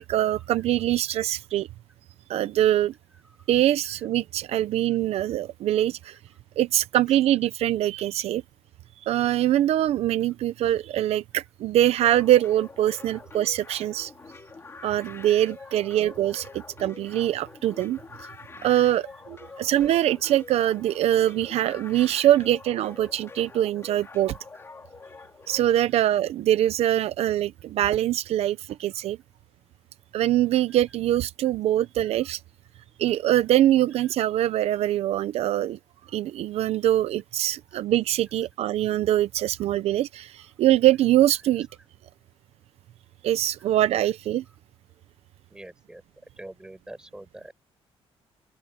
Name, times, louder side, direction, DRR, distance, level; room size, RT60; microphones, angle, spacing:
voice 1, 0.0-1.7 2.3-2.9 3.5-6.2 6.6-8.4 9.0-14.1 14.8-18.0 18.6-24.3 25.5-29.2 30.1-32.4 33.0-35.8 36.1-41.7 43.2-44.4, right 13 dB, 80° right, 0.7 m, -23 dB
voice 2, 3.1-3.6 4.0-4.1 4.9-5.4 7.1-7.2 12.9-13.4 15.6-16.6 17.5-17.6 19.3-19.8 21.7-21.9 22.3-22.4 23.0-23.1 24.3-24.6 28.9-29.0 30.7-31.0 31.8-32.4 33.4-33.5 33.9-34.1 37.7-37.8 39.6-39.7 40.4-40.5 41.2-41.9 43.9-44.0 44.4-44.6 45.5-46.0 46.4-47.5, right 1 dB, 5° right, 5.8 m, -50 dB
sound 1, 12.0-25.9, left 4 dB, 25° left, 2.7 m, -45 dB
open air
cardioid pair, 155°, 11 cm